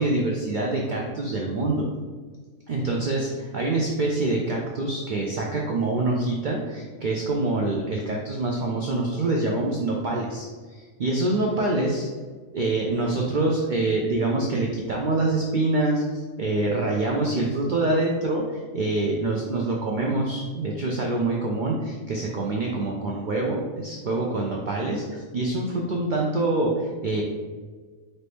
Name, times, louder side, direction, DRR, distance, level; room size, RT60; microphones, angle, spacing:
voice 1, 0.0-1.9 2.7-12.1 12.5-27.2, right 2 dB, 80° right, -1 dB, 0.4 m, -25 dB
4.3 x 2.7 x 3.3 m, 1.5 s
omnidirectional pair, 1.4 m